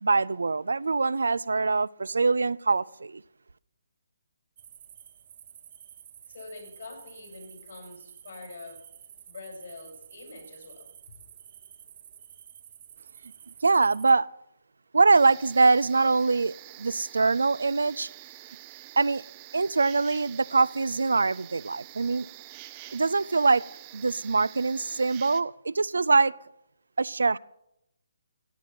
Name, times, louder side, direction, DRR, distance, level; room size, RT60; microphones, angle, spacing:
voice 1, 0.0-3.2 13.6-14.3 14.9-18.1 19.0-19.2 19.5-22.3 22.9-23.6 23.9-26.3 27.0-27.4, right 4 dB, 85° right, 20 dB, 0.4 m, -23 dB
sound 1, 4.6-14.1, right 9 dB, 40° right, 0.9 m, -50 dB
voice 2, 6.3-8.8 9.3-10.9, left 3 dB, 65° left, 1 dB, 6.3 m, -45 dB
sound 2, 15.1-25.4, right 16 dB, 25° right, 0.6 m, -47 dB
15.5 x 8.8 x 5.9 m, 0.82 s
hypercardioid pair, 160°, 0 cm